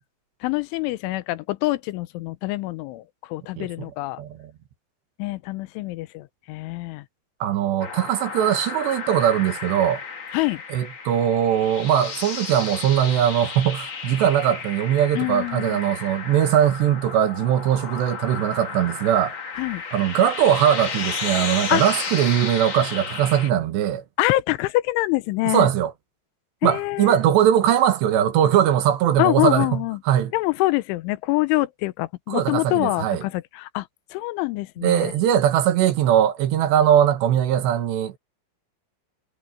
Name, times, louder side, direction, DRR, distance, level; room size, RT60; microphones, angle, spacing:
voice 1, 0.4-4.2 5.2-7.0 10.3-10.6 15.2-15.8 19.6-19.8 21.7-22.0 24.2-25.7 26.6-27.2 29.2-30.0 30.3-35.1, left 19 dB, 90° left, 3.2 m, -25 dB
voice 2, 4.2-4.5 7.4-10.0 10.7-19.4 19.9-24.0 25.5-25.9 26.6-30.3 32.3-33.2 34.8-38.2, right 10 dB, 70° right, 3.3 m, -20 dB
sound 1, 7.8-23.5, left 5 dB, 40° left, 1.7 m, -33 dB
omnidirectional pair, 5.4 m